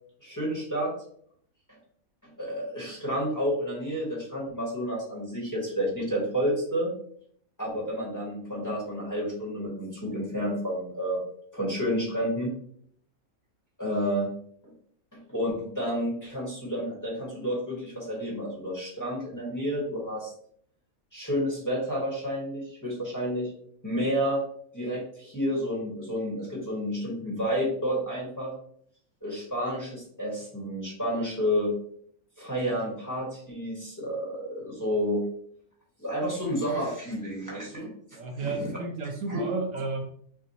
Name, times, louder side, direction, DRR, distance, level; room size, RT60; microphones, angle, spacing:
voice 1, 0.2-0.9 2.2-6.9 7.6-11.2 11.5-12.5 13.8-14.3 14.6-14.7 15.3-20.3 21.1-23.5 23.8-24.4 24.7-28.5 29.2-31.7 32.4-35.2 36.0-37.9 38.4-38.6 39.3-39.5, equal, 15° left, -6 dB, 1.4 m, -30 dB
voice 2, 38.2-40.0, right 3 dB, 70° right, 3 dB, 0.9 m, -32 dB
5.9 x 2.5 x 2.9 m, 0.63 s
omnidirectional pair, 1.6 m